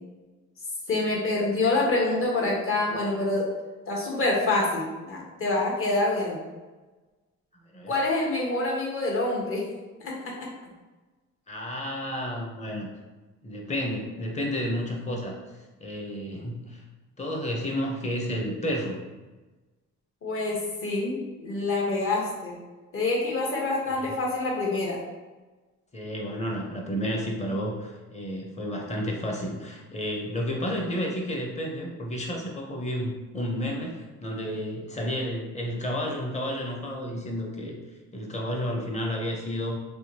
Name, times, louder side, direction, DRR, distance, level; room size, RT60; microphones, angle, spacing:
voice 1, 0.9-3.5 3.9-6.4 7.9-9.6 10.0-10.5 20.2-22.6 22.9-25.0, left 2 dB, 45° left, -2 dB, 1.1 m, -26 dB
voice 2, 11.5-12.9 13.4-15.4 15.8-16.8 17.2-19.0 23.9-24.1 25.9-37.8 38.1-39.8, equal, 25° left, 0 dB, 0.8 m, -31 dB
3.5 x 2.7 x 2.8 m, 1.2 s
cardioid pair, 90°, 30 cm